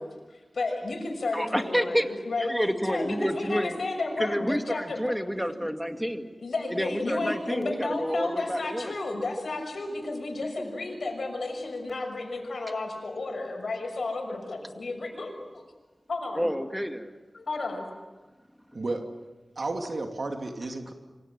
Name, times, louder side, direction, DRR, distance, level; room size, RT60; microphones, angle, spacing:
voice 1, 0.0-2.5 2.9-5.1 6.4-15.6 16.1-16.5 17.3-17.9, left 2 dB, 85° left, 2 dB, 6.6 m, -32 dB
voice 2, 1.3-2.1 2.4-3.8 4.2-6.3 6.7-8.9 10.6-10.7 16.3-17.1 18.7-18.9, equal, ahead, 6 dB, 2.2 m, -29 dB
voice 3, 19.6-20.9, right 2 dB, 65° right, 4 dB, 2.6 m, -32 dB
27.5 x 25.5 x 7.6 m, 1.2 s
wide cardioid pair, 70°, 0 cm